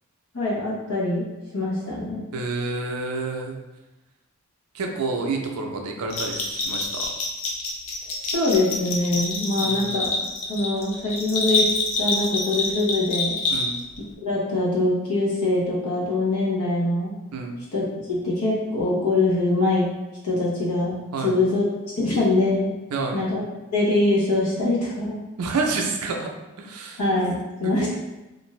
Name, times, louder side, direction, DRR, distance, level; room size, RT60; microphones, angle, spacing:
voice 1, 0.3-1.2 1.5-2.2 8.3-10.1 10.5-11.7 12.0-13.4 14.2-17.1 17.7-19.9 20.2-21.6 21.9-22.7 23.1-23.4 23.7-25.2 27.0-27.9, left 2 dB, 90° left, -5 dB, 0.9 m, -23 dB
voice 2, 2.3-3.6 4.7-7.1 9.6-9.9 13.5-13.7 17.3-17.6 21.1-21.3 22.9-23.2 25.4-26.3 26.6-27.0 27.6-27.9, right 3 dB, 85° right, 2 dB, 0.5 m, -29 dB
Bell, 6.1-14.0, left 2 dB, 60° left, 0.6 m, -26 dB
2.6 x 2.5 x 3.1 m, 1.0 s
head